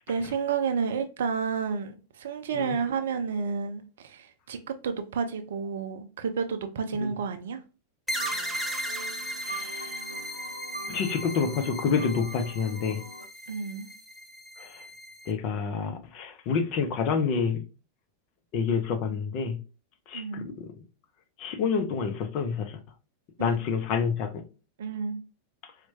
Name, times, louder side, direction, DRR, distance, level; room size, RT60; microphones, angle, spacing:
voice 1, 0.1-7.6 13.5-13.9 20.1-20.5 23.4-23.6 24.8-25.2, right 5 dB, 60° right, 0.4 m, -31 dB
sound 1, 8.1-13.3, right 2 dB, 90° left, 0.5 m, -42 dB
sound 2, 8.1-15.3, equal, 5° right, 0.6 m, -37 dB
voice 2, 9.4-10.0 10.9-13.0 14.6-14.8 15.3-17.6 18.5-19.6 20.1-20.7 21.4-22.8 23.4-24.4, left 6 dB, 40° left, 0.6 m, -28 dB
4.3 x 2.1 x 2.7 m
figure-of-eight pair, 90°, 0 cm